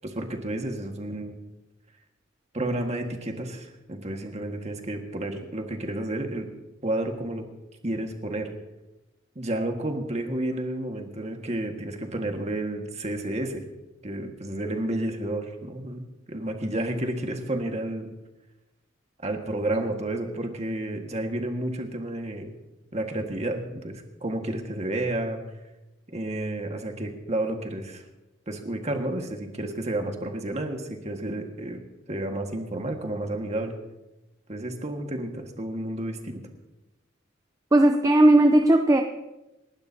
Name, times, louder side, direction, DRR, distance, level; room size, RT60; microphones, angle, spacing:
voice 1, 0.0-1.4 2.5-6.5 6.8-7.4 7.8-8.5 9.3-13.6 14.0-18.1 19.2-22.5 22.9-25.4 26.1-28.0 28.5-31.8 32.1-33.7 34.5-36.4, right 1 dB, 35° right, 3 dB, 1.7 m, -31 dB
voice 2, 37.7-39.0, right 1 dB, 20° right, 5 dB, 0.6 m, -17 dB
29.0 x 12.0 x 2.8 m, 1.0 s
head